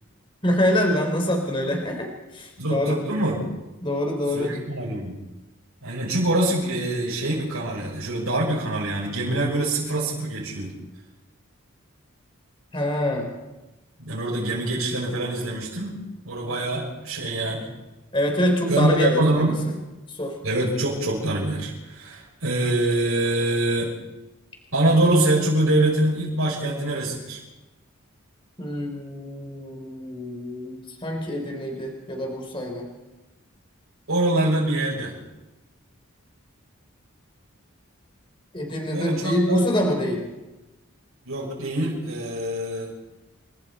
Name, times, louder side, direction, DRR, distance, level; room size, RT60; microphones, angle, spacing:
voice 1, 0.4-3.0 3.8-4.6 12.7-13.3 18.1-19.6 20.1-20.4 28.6-32.9 38.5-40.2, left 1 dB, 25° left, 2 dB, 3.9 m, -25 dB
voice 2, 2.6-3.4 4.3-5.2 5.8-10.7 14.0-16.0 16.2-17.7 18.7-19.5 20.4-23.9 24.7-27.4 34.1-35.1 38.9-39.6 41.2-42.9, right 1 dB, 85° right, -7 dB, 6.7 m, -24 dB
30.0 x 22.0 x 4.4 m, 1.0 s
head